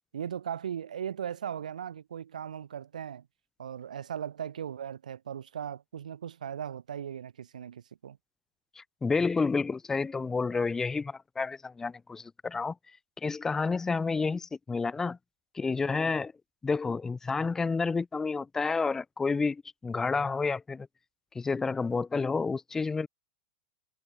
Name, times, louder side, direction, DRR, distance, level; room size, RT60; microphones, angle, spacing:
voice 1, 0.1-3.2 3.6-8.2, right 9 dB, 85° right, 1.6 m, -38 dB
voice 2, 8.8-12.7 13.2-15.2 15.5-16.3 16.6-20.9 21.3-23.1, left 4 dB, 10° left, 0.5 m, -30 dB
hypercardioid pair, 115°, 4 cm